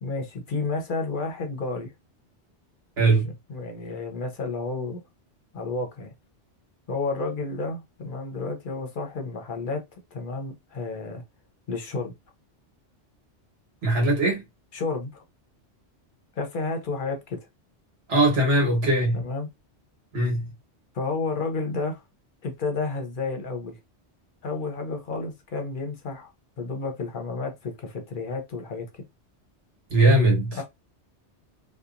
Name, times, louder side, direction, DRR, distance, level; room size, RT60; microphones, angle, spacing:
voice 1, 0.0-1.9 3.0-3.1 3.5-5.0 5.5-6.1 6.9-9.8 10.1-11.2 11.7-12.1 14.7-15.2 16.4-17.4 19.1-19.5 20.9-22.0 22.4-23.7 24.4-26.3 26.6-29.0 30.5-30.6, left 3 dB, 55° left, 0.7 m, -31 dB
voice 2, 3.0-3.3 13.8-14.4 18.1-19.2 20.1-20.5 29.9-30.6, right 1 dB, 60° right, 1.4 m, -20 dB
2.8 x 2.2 x 2.4 m
omnidirectional pair, 1.2 m